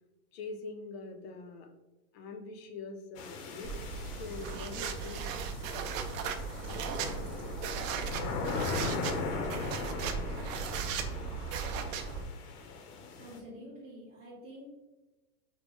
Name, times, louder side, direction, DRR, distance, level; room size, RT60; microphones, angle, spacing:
voice 1, 0.3-1.7 2.1-3.8 4.2-5.3, left 3 dB, 45° left, 5 dB, 0.5 m, -43 dB
sound 1, 3.2-13.4, left 4 dB, 75° left, 0.8 m, -39 dB
sound 2, 3.6-9.0, right 1 dB, ahead, 0.9 m, -54 dB
sound 3, 3.6-12.2, right 6 dB, 60° right, 0.5 m, -37 dB
voice 2, 13.2-14.7, equal, 20° right, -11 dB, 1.0 m, -48 dB
5.1 x 2.1 x 3.0 m, 1.1 s
supercardioid pair, 165°, 46 cm